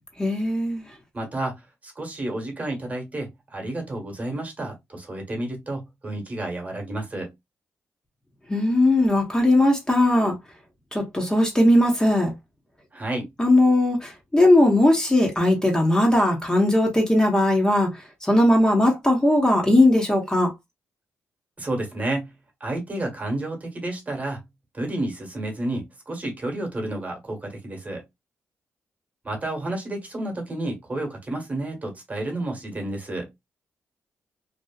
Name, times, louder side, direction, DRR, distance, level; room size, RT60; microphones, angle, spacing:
voice 1, 0.2-0.9 8.5-10.4 10.9-12.3 13.4-17.9 18.2-20.5, left 1 dB, 15° left, 0.9 m, -19 dB
voice 2, 1.1-7.3 12.9-13.3 21.6-22.3 22.6-24.4 24.7-28.0 29.2-33.3, right 1 dB, 30° right, 1.2 m, -31 dB
2.7 x 2.3 x 2.3 m
cardioid pair, 70°, 5 cm